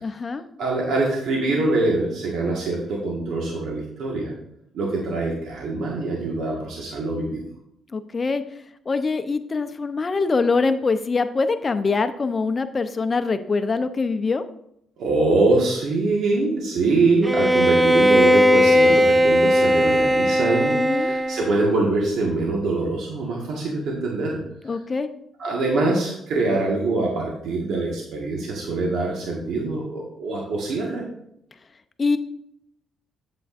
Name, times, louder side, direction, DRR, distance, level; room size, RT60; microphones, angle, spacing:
voice 1, 0.0-0.4 7.9-8.4 8.9-14.4 20.7-21.1 24.6-25.1 32.0-32.2, left 4 dB, 35° left, 9 dB, 0.6 m, -23 dB
voice 2, 0.6-4.3 4.7-7.4 15.0-24.7 25.4-31.0, right 2 dB, 75° right, -2 dB, 1.6 m, -24 dB
Bowed string instrument, 17.2-21.7, equal, 10° right, 0.4 m, -18 dB
8.3 x 7.9 x 2.6 m, 0.75 s
cardioid pair, 90°, 0 cm